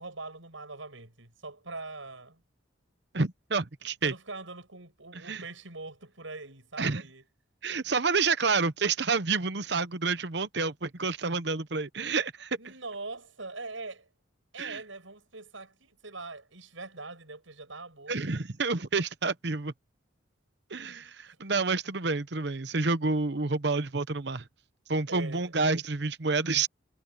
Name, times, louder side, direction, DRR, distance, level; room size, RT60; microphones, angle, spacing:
voice 1, 0.0-2.4 4.0-7.2 12.6-14.1 14.5-18.4 21.3-21.4 25.1-25.5, right 3 dB, 85° right, 7.1 m, -43 dB
voice 2, 3.1-4.1 5.1-5.4 6.8-7.0 7.6-12.6 14.6-14.8 18.1-19.7 20.7-24.5 24.9-26.7, right 4 dB, 60° right, 1.0 m, -29 dB
head